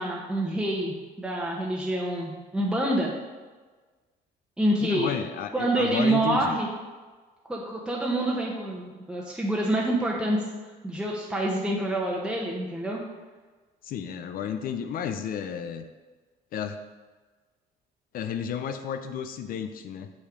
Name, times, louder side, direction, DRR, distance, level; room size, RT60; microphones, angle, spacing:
voice 1, 0.0-3.1 4.6-5.1 5.5-6.7 7.5-10.4 10.8-13.0, right 1 dB, 5° right, -3 dB, 1.0 m, -27 dB
voice 2, 4.8-6.6 13.8-15.8 16.5-16.8 18.1-20.1, left 8 dB, 60° left, 8 dB, 0.5 m, -32 dB
6.4 x 6.0 x 3.8 m, 1.3 s
cardioid pair, 110°, 17 cm